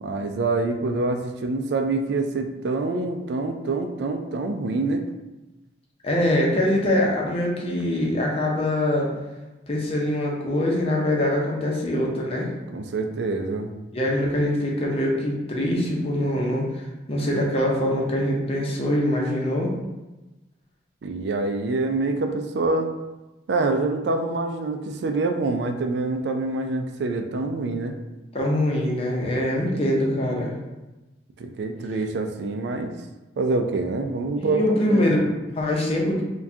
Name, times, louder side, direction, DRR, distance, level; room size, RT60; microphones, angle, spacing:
voice 1, 0.0-5.1 12.7-13.7 21.0-22.9 23.5-28.0 31.4-32.9 33.4-35.0, right 3 dB, 70° right, 5 dB, 0.4 m, -26 dB
voice 2, 6.0-9.1 9.7-12.5 13.9-19.7 28.3-30.5 34.4-36.2, left 1 dB, 35° left, -2 dB, 0.7 m, -23 dB
4.6 x 2.3 x 2.7 m, 1.1 s
head